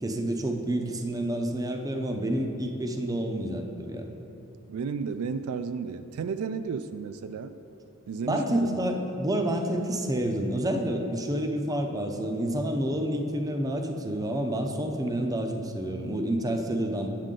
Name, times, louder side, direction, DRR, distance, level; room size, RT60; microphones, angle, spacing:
voice 1, 0.0-4.1 8.3-17.1, right 1 dB, 15° right, 3 dB, 0.6 m, -29 dB
voice 2, 4.7-7.5 8.1-8.8, right 5 dB, 70° right, 10 dB, 0.3 m, -33 dB
9.1 x 7.4 x 3.8 m, 2.9 s
head